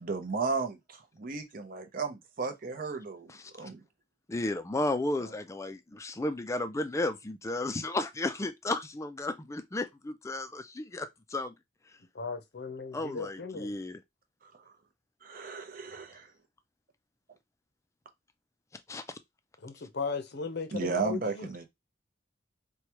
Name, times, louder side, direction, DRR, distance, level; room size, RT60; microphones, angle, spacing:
voice 1, 0.0-3.8 14.6-14.7 15.2-16.3 20.7-21.7, right 4 dB, 45° right, 0.7 m, -34 dB
voice 2, 4.3-11.5 12.9-14.0 18.9-19.0, left 2 dB, 15° left, 0.4 m, -33 dB
voice 3, 12.1-13.7 19.6-21.5, left 4 dB, 60° left, 0.7 m, -37 dB
4.6 x 2.3 x 2.9 m
head